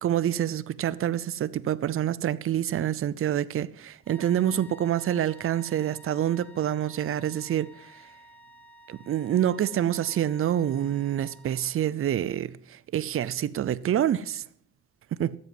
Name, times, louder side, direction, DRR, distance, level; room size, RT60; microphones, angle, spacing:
voice 1, 0.0-7.9 8.9-14.4 15.1-15.4, right 11 dB, 45° right, 0.6 m, -27 dB
sound 1, 4.0-11.9, equal, 5° left, 1.7 m, -53 dB
13.5 x 8.0 x 7.5 m
cardioid pair, 90°, 30 cm